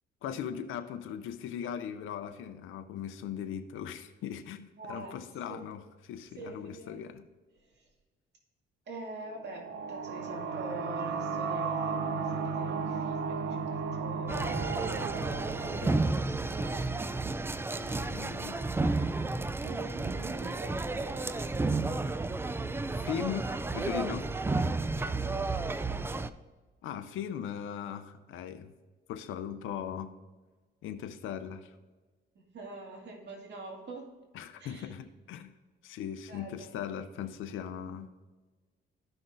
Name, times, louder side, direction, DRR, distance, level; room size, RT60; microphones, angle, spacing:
voice 1, 0.2-7.2 15.8-16.0 17.8-18.6 22.9-24.3 26.8-28.7 29.1-30.1 30.8-31.8 34.3-35.5 35.8-38.1, left 9 dB, 80° left, 8 dB, 0.6 m, -39 dB
voice 2, 4.8-5.2 5.5-5.6 6.3-7.1 7.5-7.9 8.9-17.0 19.6-22.0 24.9-26.0 32.3-34.1 34.6-34.9 36.3-36.8, right 2 dB, 60° right, -1 dB, 2.3 m, -45 dB
sound 1, 9.4-16.9, right 5 dB, 80° right, 0.7 m, -34 dB
sound 2, 14.3-26.3, right 3 dB, 10° right, 0.3 m, -32 dB
sound 3, 18.0-24.6, right 3 dB, 40° right, 1.0 m, -54 dB
14.0 x 5.8 x 2.6 m, 1.3 s
cardioid pair, 90°, 20 cm